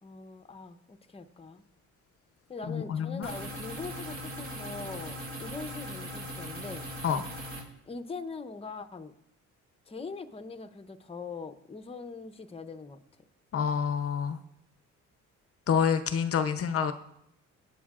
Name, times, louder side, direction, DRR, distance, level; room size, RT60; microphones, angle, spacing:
voice 1, 0.0-1.6 2.5-6.8 7.8-9.1 9.9-13.0, left 4 dB, 20° left, 9 dB, 0.8 m, -42 dB
voice 2, 2.7-3.3 7.0-7.2 13.5-14.4 15.7-16.9, left 7 dB, 50° left, 10 dB, 0.7 m, -27 dB
sound 1, 3.2-7.6, equal, 45° right, 4.3 m, -39 dB
18.5 x 9.4 x 2.5 m, 0.76 s
cardioid pair, 90°, 30 cm